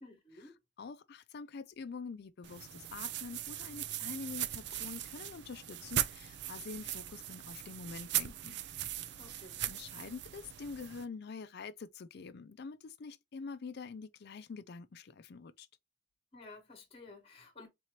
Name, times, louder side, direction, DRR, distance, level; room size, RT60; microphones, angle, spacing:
voice 1, 0.0-0.5 9.2-9.6 16.3-17.7, left 2 dB, 35° left, 1.3 m, -53 dB
voice 2, 0.8-8.6 9.3-15.7, left 4 dB, 60° left, 0.4 m, -46 dB
sound 1, 2.4-11.0, right 12 dB, 65° right, 0.4 m, -39 dB
3.8 x 2.9 x 3.0 m
head